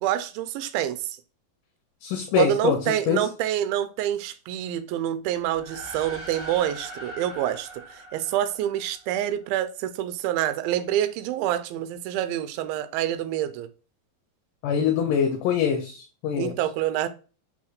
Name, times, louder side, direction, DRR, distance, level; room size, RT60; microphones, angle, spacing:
voice 1, 0.0-1.0 2.4-13.7 16.4-17.1, right 12 dB, 85° right, 2.4 m, -27 dB
voice 2, 2.0-2.8 3.1-3.2 14.6-16.5, left 8 dB, 75° left, 2.1 m, -24 dB
sound 1, 5.5-9.2, right 1 dB, 30° left, 2.6 m, -41 dB
5.1 x 4.2 x 2.4 m
omnidirectional pair, 4.2 m